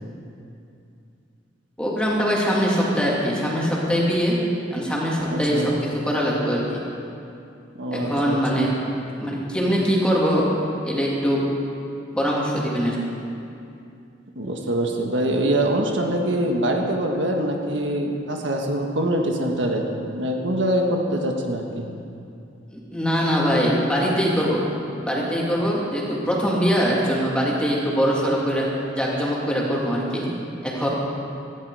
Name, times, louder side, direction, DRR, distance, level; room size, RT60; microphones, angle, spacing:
voice 1, 1.8-4.4 4.7-6.6 7.9-8.7 9.2-10.5 10.8-11.4 12.1-13.1 22.7-24.6 25.0-28.7 28.9-30.3 30.6-30.9, equal, 5° left, -5 dB, 2.9 m, -22 dB
voice 2, 5.2-5.7 7.8-8.7 14.3-19.8 20.1-21.9, right 1 dB, 75° right, 1 dB, 1.6 m, -24 dB
18.5 x 14.5 x 5.0 m, 2.6 s
head